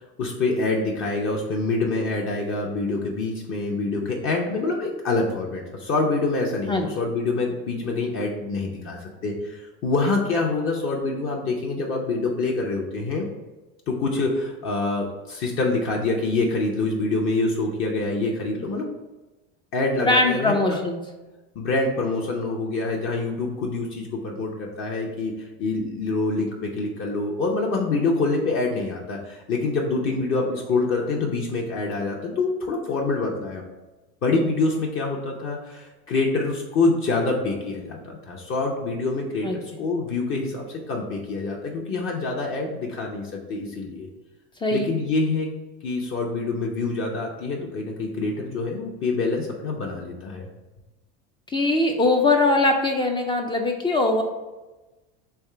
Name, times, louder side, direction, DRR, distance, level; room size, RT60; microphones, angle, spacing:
voice 1, 0.0-13.3 13.9-18.9 19.7-20.5 21.5-33.6 34.2-44.1 44.7-45.5 45.8-50.5, left 3 dB, 40° left, -1 dB, 0.7 m, -26 dB
voice 2, 20.0-21.0 39.4-39.6 44.6-44.8 51.5-54.2, left 2 dB, 15° left, 3 dB, 0.3 m, -21 dB
3.5 x 3.2 x 4.5 m, 1.1 s
supercardioid pair, 115°, 32 cm